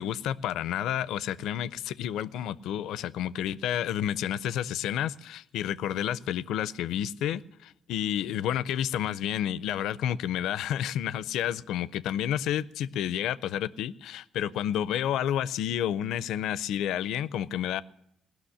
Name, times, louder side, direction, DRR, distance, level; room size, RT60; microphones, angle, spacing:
voice 1, 0.0-17.8, left 10 dB, 85° left, 0.4 m, -30 dB
17.5 x 6.1 x 9.9 m
cardioid pair, 90°, 0 cm